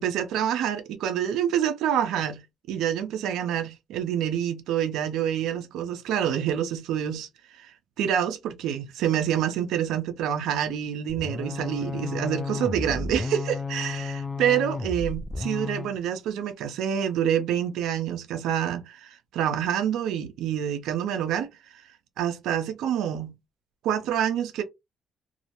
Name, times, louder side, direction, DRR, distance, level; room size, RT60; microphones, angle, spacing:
voice 1, 0.0-2.4 2.7-7.3 7.6-7.7 8.0-21.5 22.2-23.3 23.8-24.6, right 9 dB, 85° right, 0.5 m, -27 dB
sound 1, 11.1-16.0, left 4 dB, 20° left, 0.3 m, -32 dB
2.3 x 2.0 x 2.8 m
cardioid pair, 90°, 0 cm